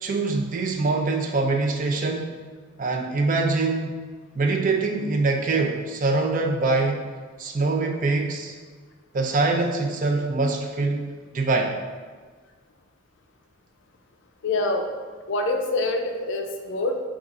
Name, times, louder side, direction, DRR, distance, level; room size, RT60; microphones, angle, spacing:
voice 1, 0.0-2.4 2.8-4.0 4.3-7.0 7.4-8.5 9.1-11.1 11.3-11.8, right 3 dB, 40° right, 2 dB, 0.4 m, -24 dB
voice 2, 14.4-14.9 15.3-17.0, left 2 dB, 60° left, 4 dB, 0.4 m, -25 dB
5.2 x 2.4 x 3.6 m, 1.5 s
head